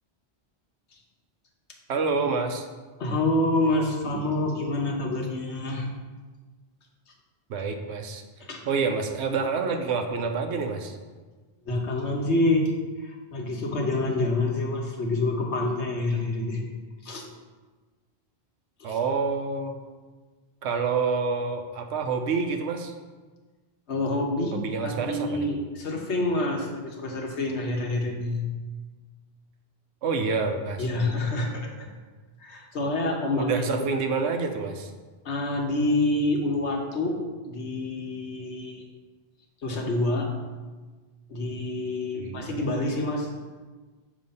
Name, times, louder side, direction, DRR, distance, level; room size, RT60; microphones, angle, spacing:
voice 1, 1.9-2.7 7.5-8.2 8.7-11.0 18.8-19.8 20.6-22.9 24.5-25.4 30.0-30.9 33.3-34.9 42.1-42.5, right 4 dB, 80° right, 5 dB, 0.9 m, -27 dB
voice 2, 3.0-5.9 8.5-8.6 11.6-12.7 13.0-16.6 17.0-17.3 18.8-19.0 23.9-28.5 30.8-31.9 32.4-34.0 35.2-37.2 37.5-38.9 39.6-40.3 41.3-43.3, left 2 dB, 80° left, 0 dB, 1.3 m, -27 dB
6.5 x 3.1 x 5.4 m, 1.3 s
omnidirectional pair, 1.1 m